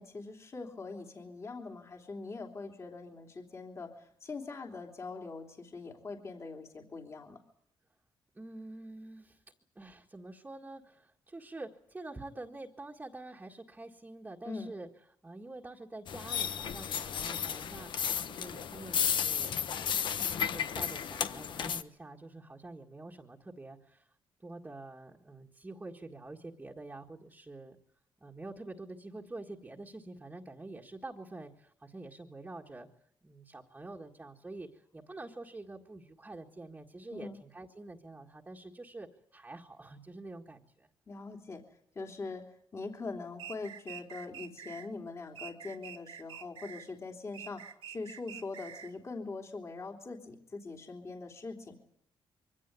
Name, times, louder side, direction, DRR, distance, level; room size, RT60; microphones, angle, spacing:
voice 1, 0.0-7.4 14.4-14.7 37.1-37.4 41.1-41.6 41.9-51.8, left 3 dB, 30° left, 2 dB, 3.2 m, -42 dB
voice 2, 8.3-9.4 9.8-14.9 15.2-20.1 20.4-24.1 24.4-27.8 28.2-32.9 33.2-40.9, right 2 dB, 15° right, -1 dB, 1.9 m, -47 dB
sound 1, 16.1-21.8, left 8 dB, 60° left, 1.1 m, -33 dB
sound 2, 43.4-44.9 45.4-46.9 47.3-49.0, right 9 dB, 70° right, 1.5 m, -46 dB
24.0 x 17.0 x 9.6 m, 0.69 s
cardioid pair, 135°, 9 cm